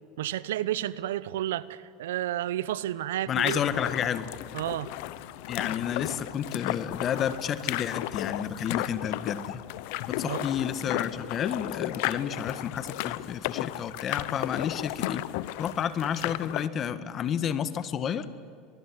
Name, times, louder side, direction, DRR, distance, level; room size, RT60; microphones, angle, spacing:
voice 1, 0.2-3.6 4.5-4.9 10.2-10.5, right 13 dB, 85° right, 18 dB, 0.9 m, -31 dB
voice 2, 3.3-4.3 5.5-9.6 10.1-15.2 15.6-18.2, left 8 dB, 40° left, 13 dB, 1.6 m, -31 dB
sound 1, 3.4-16.7, left 16 dB, 70° left, 0.9 m, -34 dB
24.5 x 20.5 x 9.9 m, 2.4 s
supercardioid pair, 100°, 0 cm